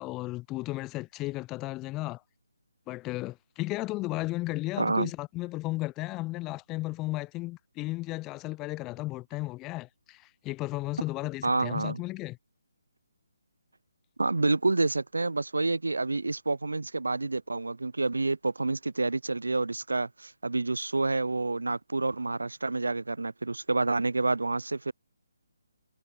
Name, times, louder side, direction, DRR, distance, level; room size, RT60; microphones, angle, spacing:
voice 1, 0.0-2.2 2.9-12.4, left 19 dB, 15° left, 0.4 m, -34 dB
voice 2, 4.8-5.1 11.4-12.0 14.2-24.9, right 3 dB, 75° right, 0.4 m, -28 dB
figure-of-eight pair, 145°, 0 cm